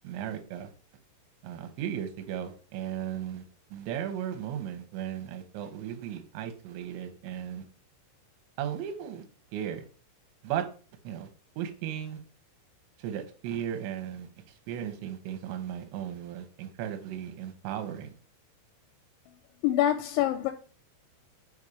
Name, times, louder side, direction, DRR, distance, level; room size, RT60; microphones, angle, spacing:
voice 1, 0.0-0.7 1.4-3.4 3.7-7.6 8.6-9.2 9.5-9.9 10.4-10.6 11.0-11.3 11.6-12.2 13.0-14.3 14.7-18.1, right 10 dB, 75° right, 2.9 m, -36 dB
voice 2, 19.6-20.5, left 12 dB, 85° left, 2.7 m, -25 dB
7.2 x 2.7 x 4.8 m
omnidirectional pair, 5.6 m